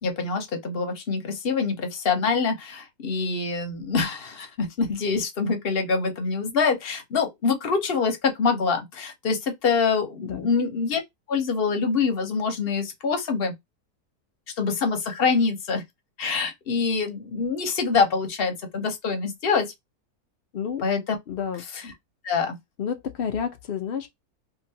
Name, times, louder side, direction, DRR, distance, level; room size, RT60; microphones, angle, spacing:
voice 1, 0.0-11.0 11.3-13.5 14.6-15.8 16.2-19.7 20.8-21.0 21.7-21.9 22.2-22.6, left 5 dB, 50° left, 0.8 m, -25 dB
voice 2, 21.3-21.6 22.8-24.1, left 7 dB, 80° left, 0.5 m, -30 dB
2.9 x 2.6 x 2.7 m
omnidirectional pair, 1.6 m